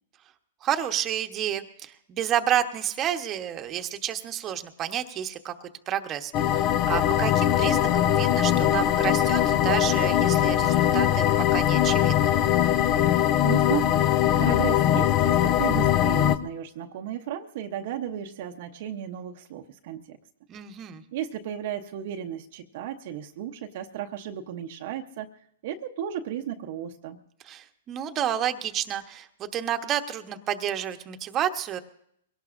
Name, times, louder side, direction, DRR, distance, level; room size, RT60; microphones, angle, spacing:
voice 1, 0.6-5.5 5.9-12.4 20.5-21.0 27.5-31.8, right 10 dB, 25° right, 6 dB, 1.0 m, -30 dB
sound 1, 6.3-16.4, left 11 dB, 40° left, 0.6 m, -21 dB
voice 2, 13.4-14.1 14.4-20.2 21.1-25.3 25.6-27.2, right 10 dB, 55° right, 4 dB, 0.8 m, -34 dB
22.5 x 17.5 x 2.6 m, 0.71 s
hypercardioid pair, 130°, 0 cm